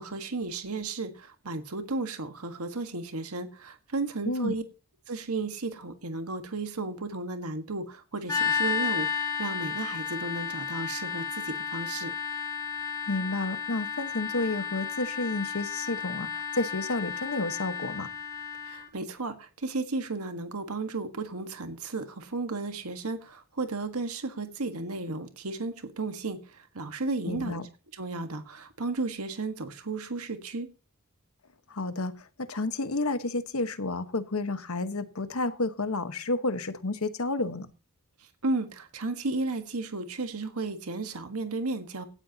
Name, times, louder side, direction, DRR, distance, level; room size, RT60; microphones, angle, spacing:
voice 1, 0.0-4.6 5.1-12.1 18.6-27.6 27.9-30.7 38.2-42.1, right 3 dB, 85° right, 1.6 m, -34 dB
sound 1, 8.3-18.9, left 7 dB, 15° left, 3.0 m, -33 dB
voice 2, 13.1-18.1 27.3-27.7 31.7-37.7, left 2 dB, 75° left, 1.3 m, -31 dB
17.5 x 12.5 x 2.9 m
head